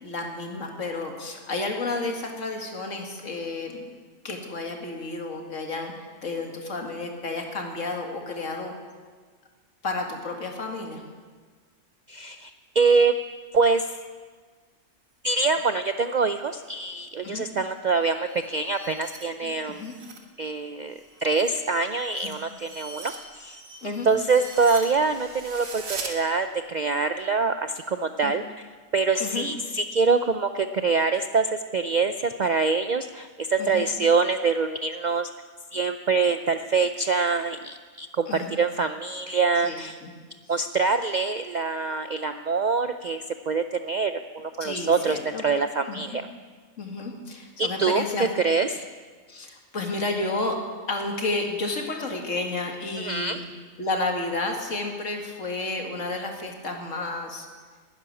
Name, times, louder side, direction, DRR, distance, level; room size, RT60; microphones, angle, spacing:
voice 1, 0.0-3.9 4.2-5.9 6.2-8.8 9.8-11.0 17.2-17.5 19.4-19.9 23.8-24.1 28.2-28.3 29.2-29.5 33.6-33.9 38.3-38.6 39.6-40.1 44.6-45.4 45.9-46.0 46.8-48.3 49.3-50.6 50.9-53.5 53.8-57.5, left 2 dB, 75° left, 2 dB, 2.3 m, -31 dB
voice 2, 12.1-13.1 13.5-14.0 15.2-19.8 20.4-20.9 21.2-23.6 23.8-28.4 28.9-35.3 35.7-40.0 40.5-46.3 47.6-48.1 48.4-48.8 53.0-53.4, right 4 dB, 60° right, 9 dB, 0.4 m, -25 dB
sound 1, 17.8-20.3 20.6-26.1, right 3 dB, 85° right, 1.9 m, -41 dB
13.0 x 9.8 x 9.9 m, 1.5 s
omnidirectional pair, 1.3 m